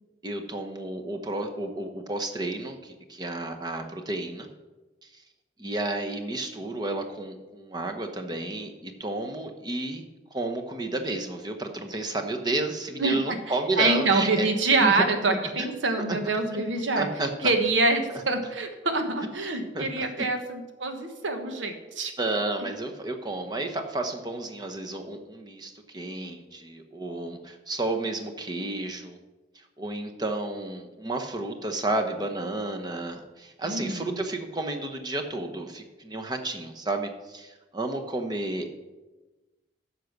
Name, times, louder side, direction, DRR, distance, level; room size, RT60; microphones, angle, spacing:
voice 1, 0.2-4.5 5.6-10.0 10.3-14.5 14.8-14.9 15.6-15.7 16.1-16.2 16.5-17.5 18.1-18.2 19.7-20.3 22.2-29.2 29.5-38.7, right 2 dB, 20° right, 4 dB, 0.9 m, -32 dB
voice 2, 13.0-13.4 13.8-17.1 17.4-22.1 33.6-34.2, right 3 dB, 90° right, 5 dB, 1.4 m, -25 dB
10.0 x 6.6 x 6.0 m, 1.2 s
head